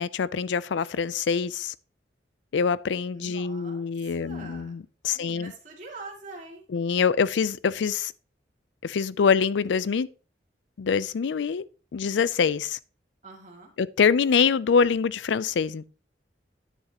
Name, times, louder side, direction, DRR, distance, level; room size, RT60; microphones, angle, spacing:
voice 1, 0.0-1.7 2.5-5.5 6.7-8.1 8.8-10.1 10.8-11.6 11.9-12.8 13.8-15.8, left 6 dB, 85° left, 0.4 m, -25 dB
voice 2, 3.1-4.7 5.1-6.6 13.2-13.7, right 3 dB, 45° right, 2.3 m, -44 dB
9.9 x 8.1 x 2.9 m
head